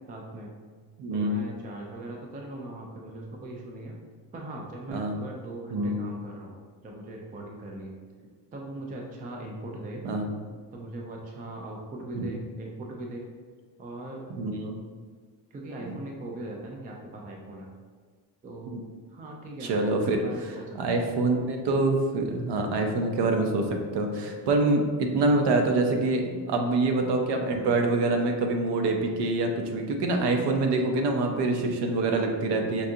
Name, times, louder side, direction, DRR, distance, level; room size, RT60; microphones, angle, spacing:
voice 1, 0.1-0.5 1.1-4.0 4.3-6.6 6.8-8.0 8.5-10.1 10.7-13.2 13.8-14.3 15.5-17.7 18.4-18.8 19.1-21.1, right 1 dB, 20° right, -1 dB, 0.3 m, -40 dB
voice 2, 1.0-1.4 4.9-5.1 5.7-5.9 10.0-10.2 12.1-12.3 14.4-14.8 15.9-16.0 19.6-20.2 20.8-32.9, right 2 dB, 60° right, 3 dB, 0.7 m, -25 dB
5.4 x 2.4 x 2.6 m, 1.5 s
cardioid pair, 135°, 46 cm